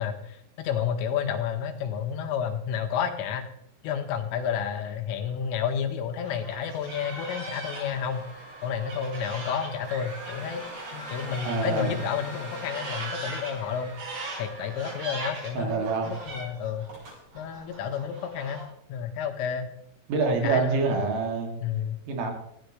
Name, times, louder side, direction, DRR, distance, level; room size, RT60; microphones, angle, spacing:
voice 1, 0.0-3.5 3.8-8.3 8.6-10.6 10.9-14.0 14.4-16.9 17.4-18.6 18.9-19.7 20.2-21.0 21.6-22.0, left 7 dB, 80° left, 5 dB, 3.9 m, -30 dB
sound 1, 6.2-11.7 11.9-18.6, right 2 dB, 55° right, 8.2 m, -40 dB
sound 2, 7.6-15.9 16.2-16.4 16.9-17.2, right 1 dB, 35° right, 8.5 m, -43 dB
voice 2, 11.4-12.0 15.6-16.2 20.1-21.5 22.1-22.3, right 4 dB, 80° right, 2 dB, 5.4 m, -26 dB
19.0 x 15.5 x 3.4 m, 0.73 s
omnidirectional pair, 5.9 m